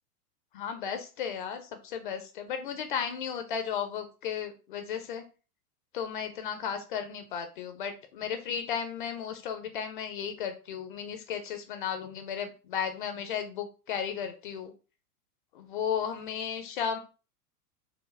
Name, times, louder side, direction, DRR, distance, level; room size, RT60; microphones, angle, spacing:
voice 1, 0.5-5.2 5.9-14.7 15.5-17.0, left 8 dB, 35° left, 7 dB, 0.4 m, -34 dB
4.7 x 2.1 x 3.1 m, 0.33 s
figure-of-eight pair, 100°, 47 cm